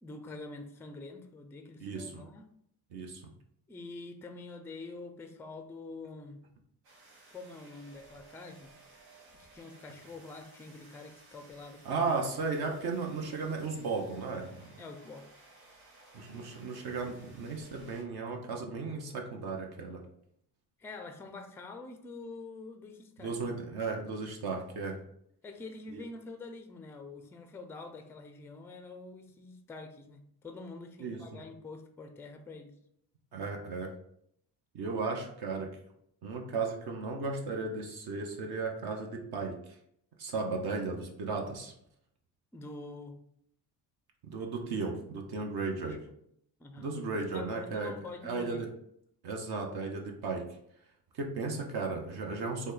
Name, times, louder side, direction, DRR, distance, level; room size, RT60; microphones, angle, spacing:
voice 1, 0.0-2.5 3.7-6.4 7.3-8.7 9.4-11.9 14.8-15.3 20.8-23.4 25.4-32.7 42.5-43.2 45.7-46.1 46.6-46.9 47.3-48.6, left 3 dB, 5° left, 7 dB, 0.3 m, -46 dB
voice 2, 1.8-2.2 2.9-3.2 11.8-14.6 16.1-20.0 23.2-25.0 25.9-26.0 31.0-31.2 33.3-33.9 34.7-35.7 36.2-39.8 40.2-41.7 44.2-46.0 46.8-47.9 48.2-48.7 49.2-50.4 51.1-52.7, right 4 dB, 60° right, 2 dB, 0.7 m, -35 dB
sound 1, 6.8-18.0, right 2 dB, 90° right, 1.0 m, -58 dB
3.1 x 2.2 x 3.7 m, 0.72 s
supercardioid pair, 60°, 44 cm